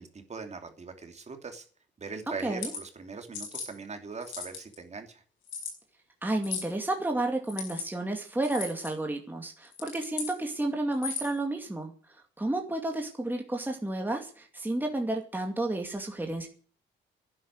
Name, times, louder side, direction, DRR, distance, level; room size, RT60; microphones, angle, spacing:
voice 1, 0.0-1.7 2.0-5.2, right 4 dB, 35° right, 5 dB, 2.9 m, -41 dB
sound 1, 2.4-2.8 3.3-3.7 4.2-4.7 5.5-5.7 6.4-6.7 7.4-7.9 8.4-8.9 9.6-10.3 10.9-11.4, left 5 dB, 85° left, 5.3 m, -37 dB
voice 2, 6.2-11.9 12.4-16.5, right 2 dB, 10° right, 2 dB, 2.4 m, -31 dB
11.5 x 10.5 x 9.6 m, 0.43 s
cardioid pair, 90°, 20 cm